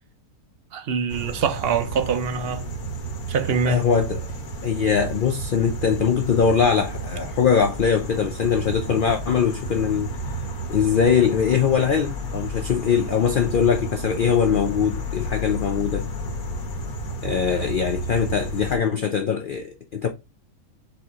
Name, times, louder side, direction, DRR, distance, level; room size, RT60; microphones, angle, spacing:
voice 1, 0.7-2.6 3.3-3.9, right 6 dB, 55° right, 0.7 m, -24 dB
sound 1, 1.1-18.8, right 1 dB, 85° left, 1.4 m, -32 dB
voice 2, 3.7-4.2 4.6-10.1 10.7-16.1 17.2-20.1, left 7 dB, 70° left, 0.5 m, -22 dB
4.5 x 2.8 x 3.6 m
omnidirectional pair, 1.5 m